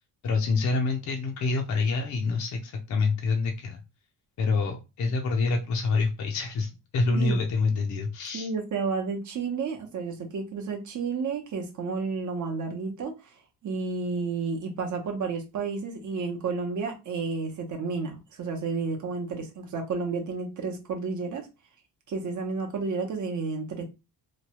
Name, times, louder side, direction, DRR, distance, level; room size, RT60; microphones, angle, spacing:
voice 1, 0.2-3.8 4.4-8.5, left 3 dB, 45° left, 0.6 m, -27 dB
voice 2, 8.3-13.3 13.6-21.5 22.1-23.8, right 4 dB, 45° right, 0.8 m, -31 dB
3.0 x 2.2 x 2.9 m
cardioid pair, 150°, 41 cm